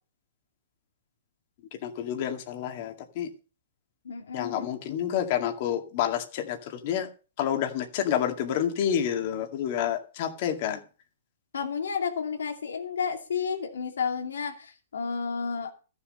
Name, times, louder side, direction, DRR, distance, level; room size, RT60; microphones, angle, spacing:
voice 1, 1.8-3.3 4.3-7.1 7.4-10.8, left 9 dB, 40° left, 2.1 m, -29 dB
voice 2, 4.0-4.7 11.5-15.7, left 6 dB, 90° left, 2.5 m, -31 dB
14.0 x 7.2 x 6.6 m
hypercardioid pair, 155°, 0 cm